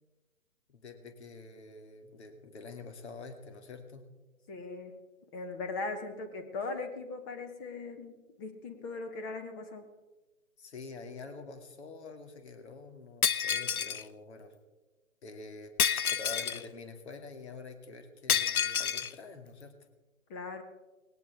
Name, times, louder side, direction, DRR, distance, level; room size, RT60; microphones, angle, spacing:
voice 1, 0.7-4.1 10.6-14.5 15.2-15.7 16.1-19.8, left 4 dB, 50° left, 6 dB, 2.5 m, -47 dB
voice 2, 4.5-5.0 5.3-9.9 20.3-20.6, left 3 dB, 15° left, 7 dB, 1.0 m, -39 dB
Shatter, 13.2-14.0 15.8-16.6 18.3-19.1, left 7 dB, 85° left, 0.8 m, -29 dB
20.0 x 18.0 x 3.5 m, 1.2 s
hypercardioid pair, 150°, 42 cm